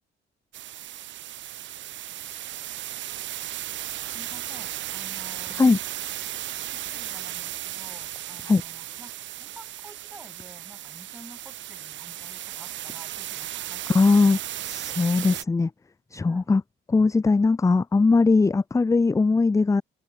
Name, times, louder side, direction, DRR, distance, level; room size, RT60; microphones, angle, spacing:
sound 1, 0.5-15.4, right 13 dB, 70° right, 0.8 m, -35 dB
voice 1, 4.1-5.7 6.7-9.1 9.4-14.4 16.2-16.5, right 1 dB, 10° right, 4.9 m, -50 dB
voice 2, 13.9-14.4 14.6-15.7 16.1-16.6 16.9-19.8, left 3 dB, 15° left, 0.5 m, -20 dB
cardioid pair, 90°, 20 cm